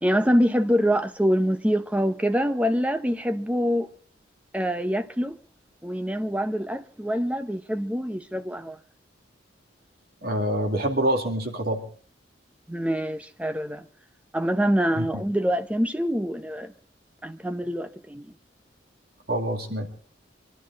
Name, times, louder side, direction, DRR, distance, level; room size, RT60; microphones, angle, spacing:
voice 1, 0.0-3.9 4.5-5.4 5.8-8.8 12.7-13.8 14.3-16.7 17.2-18.3, equal, 5° right, 0.7 m, -25 dB
voice 2, 10.2-11.8 15.0-15.1 19.3-19.9, right 1 dB, 55° right, 2.5 m, -26 dB
24.5 x 12.5 x 4.0 m
head